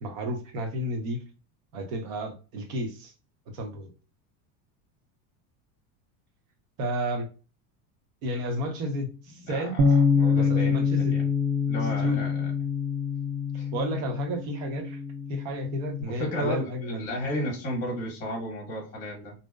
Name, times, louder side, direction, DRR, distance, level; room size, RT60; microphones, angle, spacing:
voice 1, 0.0-1.2 1.7-3.1 3.5-3.9 6.8-7.3 8.2-9.8 10.3-11.1 12.0-12.2 13.7-15.0 15.3-17.0, right 1 dB, 60° right, 3 dB, 0.9 m, -32 dB
voice 2, 9.5-9.8 10.1-11.2 11.7-12.5 13.6-13.7 16.0-19.3, equal, 15° left, -3 dB, 1.0 m, -33 dB
Bass guitar, 9.8-16.0, left 5 dB, 80° right, 0.6 m, -25 dB
2.7 x 2.1 x 2.2 m, 0.33 s
cardioid pair, 175°, 45 cm